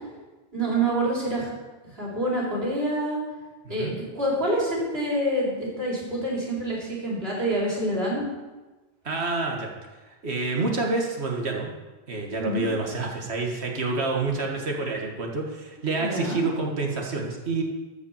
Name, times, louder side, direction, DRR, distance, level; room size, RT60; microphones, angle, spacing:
voice 1, 0.5-1.5 1.9-3.2 3.7-3.9 4.1-8.3 12.4-12.7 16.0-16.4, right 1 dB, 70° right, -5 dB, 4.0 m, -26 dB
voice 2, 9.0-9.7 10.1-11.7 12.1-17.6, right 3 dB, 90° right, 0 dB, 1.9 m, -28 dB
13.0 x 5.5 x 7.2 m, 1.2 s
omnidirectional pair, 1.1 m